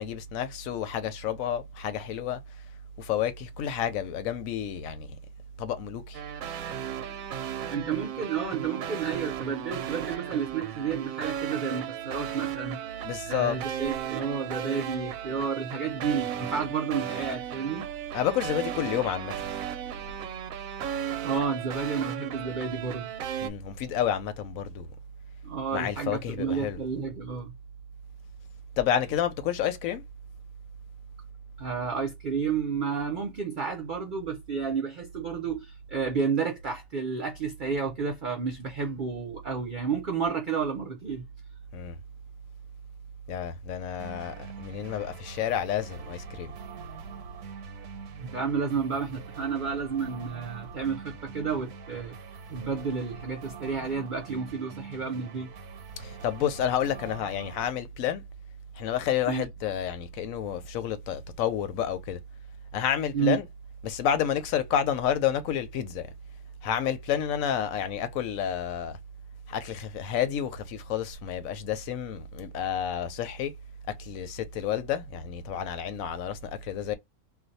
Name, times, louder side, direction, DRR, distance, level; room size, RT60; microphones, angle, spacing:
voice 1, 0.0-2.4 3.0-5.1 5.6-6.2 13.0-13.8 18.1-19.5 23.4-24.9 25.7-26.8 28.8-30.0 41.7-42.0 43.3-46.5 56.0-58.2 58.8-62.2 62.7-63.4 63.8-66.1 66.6-69.0 69.5-73.5 73.9-76.9, left 9 dB, 70° left, 0.9 m, -30 dB
sound 1, 6.1-23.5, right 10 dB, 70° right, 1.0 m, -35 dB
voice 2, 7.7-12.8 13.3-17.9 21.2-23.1 25.4-27.5 31.6-41.2 48.2-52.1 52.5-55.5 59.3-59.5 63.1-63.4, right 6 dB, 50° right, 0.6 m, -31 dB
sound 2, 44.0-57.7, right 5 dB, 90° right, 1.2 m, -45 dB
2.5 x 2.2 x 3.9 m
omnidirectional pair, 1.6 m